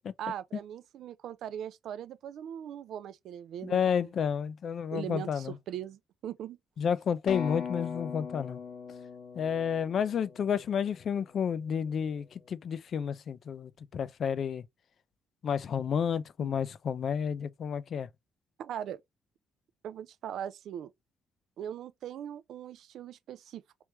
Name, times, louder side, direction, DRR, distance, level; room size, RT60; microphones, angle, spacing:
voice 1, 0.2-4.1 4.9-6.6 16.4-16.6 18.6-19.0 19.8-20.9 21.6-23.8, right 10 dB, 75° right, 0.4 m, -40 dB
voice 2, 3.6-5.5 6.8-8.6 9.4-14.6 15.4-18.1, left 7 dB, 60° left, 0.4 m, -31 dB
sound 1, 7.3-11.0, left 6 dB, 90° left, 1.2 m, -40 dB
3.3 x 3.1 x 3.0 m
cardioid pair, 90°, 0 cm